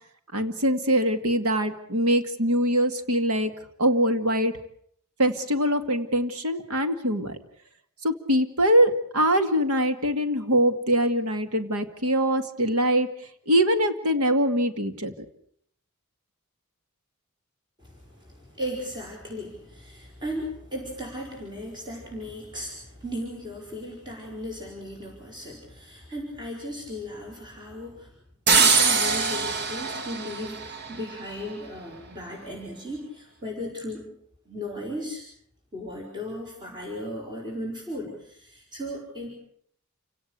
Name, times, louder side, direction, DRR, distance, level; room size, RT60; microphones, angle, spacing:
voice 1, 0.3-3.5 3.8-4.5 5.2-7.4 8.0-13.1 13.5-15.1, equal, 90° right, 8 dB, 2.2 m, -23 dB
voice 2, 17.8-28.1 28.6-34.1 34.5-35.2 35.7-39.3, equal, 20° right, -1 dB, 5.7 m, -36 dB
sound 1, 28.5-31.3, right 5 dB, 50° right, 1.7 m, -23 dB
28.5 x 17.5 x 8.3 m, 0.68 s
head